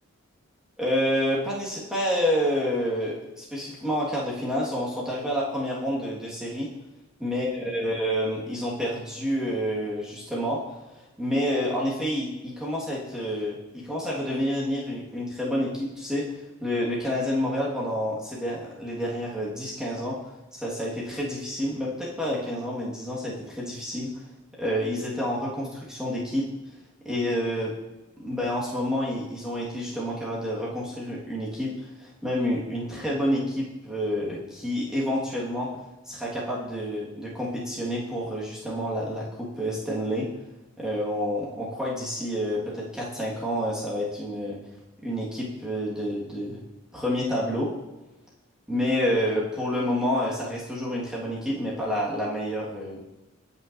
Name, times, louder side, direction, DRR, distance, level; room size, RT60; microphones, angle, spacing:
voice 1, 0.8-6.7 7.2-10.7 11.2-20.2 20.5-24.1 24.6-26.5 27.0-27.7 28.2-35.7 36.1-40.3 40.8-44.6 45.0-46.6 46.9-47.7 48.7-53.0, equal, 5° right, -6 dB, 1.6 m, -28 dB
14.5 x 5.5 x 2.6 m, 1.1 s
head